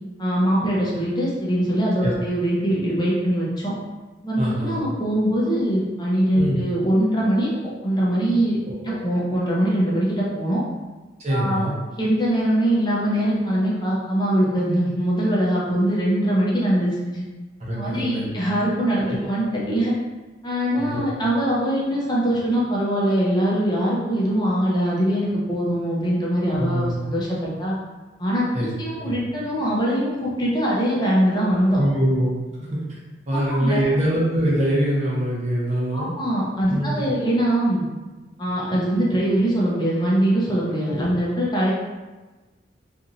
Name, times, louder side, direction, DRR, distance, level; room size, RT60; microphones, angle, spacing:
voice 1, 0.2-3.7 4.2-7.6 7.8-8.6 8.8-10.6 11.3-11.7 12.0-17.2 17.7-19.9 20.4-27.7 28.2-31.8 33.3-33.8 35.9-37.8 38.4-41.7, equal, 25° left, -6 dB, 0.6 m, -22 dB
voice 2, 4.4-4.8 6.3-6.6 8.6-9.0 11.2-11.8 17.6-18.3 19.1-19.2 20.8-21.0 26.6-27.0 28.5-29.1 31.8-32.3 32.7-33.0 33.3-36.1 36.7-37.1 41.0-41.1, right 1 dB, 40° right, -5 dB, 0.7 m, -24 dB
2.9 x 2.6 x 2.5 m, 1.2 s
head